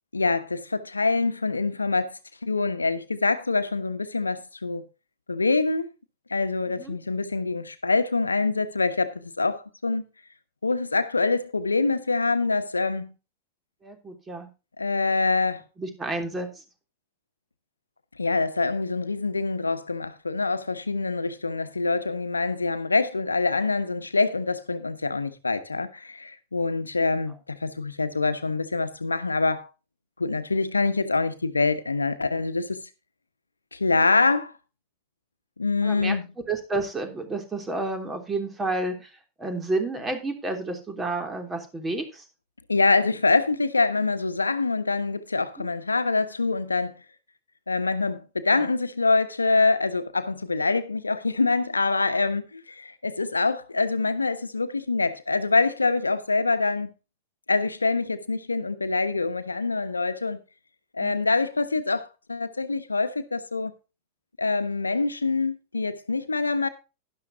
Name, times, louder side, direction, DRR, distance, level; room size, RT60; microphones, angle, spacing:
voice 1, 0.1-4.8 5.3-5.9 6.3-10.0 10.6-13.1 14.8-15.6 18.2-29.7 30.2-32.9 33.7-34.5 35.6-36.3 42.7-46.9 47.7-56.9 57.5-60.4 60.9-63.7 64.4-66.7, left 3 dB, 80° left, 1.2 m, -25 dB
voice 2, 13.8-14.5 15.8-16.6 35.8-36.1 36.5-39.1 39.4-42.2 45.6-45.7 48.5-48.7 61.0-61.2, right 2 dB, 15° right, 3.3 m, -30 dB
12.0 x 11.5 x 2.8 m
figure-of-eight pair, 90°, 0 cm